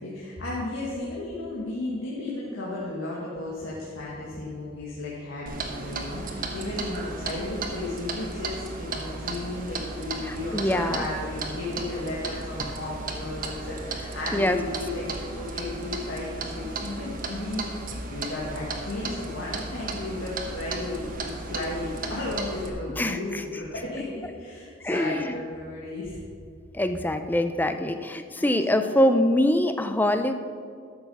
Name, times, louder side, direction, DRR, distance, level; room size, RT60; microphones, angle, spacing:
voice 1, 0.0-17.7 18.0-26.2 27.1-27.3 28.3-28.5 28.8-28.9, left 2 dB, 85° left, -6 dB, 1.9 m, -34 dB
Clock, 5.5-22.7, right 3 dB, 45° right, 1.1 m, -35 dB
voice 2, 10.3-11.1 14.3-14.6 23.0-23.4 24.8-25.3 26.7-30.3, left 1 dB, 10° left, 8 dB, 0.5 m, -24 dB
12.5 x 7.1 x 5.5 m, 2.3 s
head